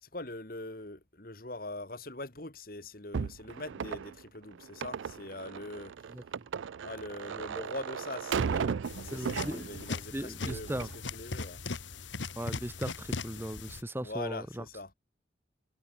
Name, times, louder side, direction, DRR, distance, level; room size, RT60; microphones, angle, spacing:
voice 1, 0.0-6.1 6.8-11.6 14.0-14.9, left 2 dB, 50° left, 2.3 m, -42 dB
sound 1, 3.1-10.0 10.3-11.0, right 6 dB, 90° right, 0.4 m, -36 dB
sound 2, 8.8-13.8, left 3 dB, 85° left, 1.6 m, -39 dB
voice 2, 9.1-9.7 10.1-10.9 12.3-14.6, right 1 dB, 10° right, 1.0 m, -37 dB
head